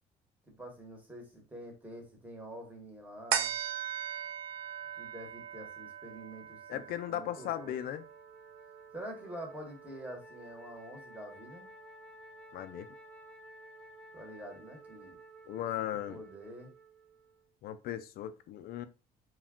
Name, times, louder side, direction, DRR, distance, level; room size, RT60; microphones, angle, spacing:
voice 1, 0.5-3.5 5.0-6.8 7.1-7.9 8.9-11.7 14.1-15.2 15.5-15.7 16.1-16.7, right 1 dB, 10° right, 1.1 m, -46 dB
sound 1, 3.3-10.1 10.5-10.6, right 9 dB, 80° right, 0.4 m, -39 dB
voice 2, 6.7-8.0 12.5-12.9 15.5-16.2 17.6-18.9, left 12 dB, 65° left, 0.4 m, -37 dB
Wind instrument woodwind instrument, 7.1-17.5, right 2 dB, 5° left, 0.6 m, -54 dB
2.3 x 2.1 x 3.5 m
cardioid pair, 110°, 17 cm